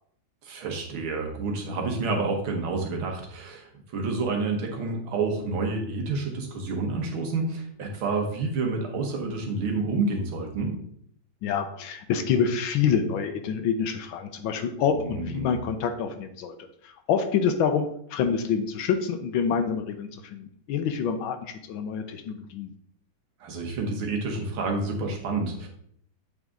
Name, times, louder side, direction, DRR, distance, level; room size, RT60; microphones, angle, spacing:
voice 1, 0.4-10.7 14.9-15.5 23.4-25.7, right 3 dB, 90° right, 1 dB, 2.1 m, -29 dB
voice 2, 11.4-22.7, left 7 dB, 85° left, 7 dB, 1.4 m, -27 dB
8.1 x 4.0 x 3.7 m, 0.67 s
omnidirectional pair, 2.2 m